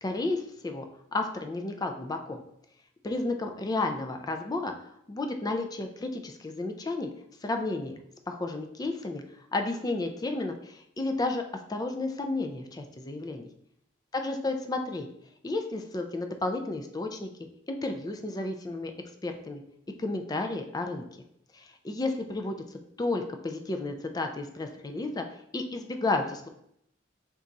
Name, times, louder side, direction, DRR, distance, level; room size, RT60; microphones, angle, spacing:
voice 1, 0.0-2.4 3.0-4.7 5.1-7.1 7.4-7.9 8.3-9.2 9.5-11.4 11.7-13.5 14.1-15.1 15.4-17.3 17.7-18.9 19.2-19.6 20.0-21.2 21.5-22.6 23.0-25.2 25.5-26.5, left 2 dB, 20° left, 5 dB, 0.3 m, -32 dB
4.1 x 2.3 x 3.8 m, 0.72 s
head